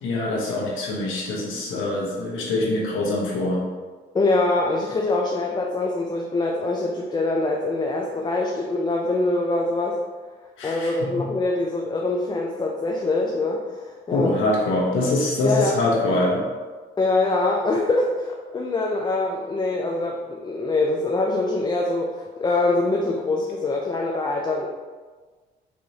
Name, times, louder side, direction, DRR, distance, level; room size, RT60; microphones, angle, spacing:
voice 1, 0.0-3.6 10.6-11.2 14.1-16.4, left 2 dB, 85° left, -3 dB, 1.0 m, -24 dB
voice 2, 4.1-10.0 10.6-14.4 15.4-15.7 17.0-24.7, left 2 dB, 20° left, 0 dB, 0.4 m, -24 dB
4.6 x 3.0 x 2.7 m, 1.4 s
cardioid pair, 90°, 20 cm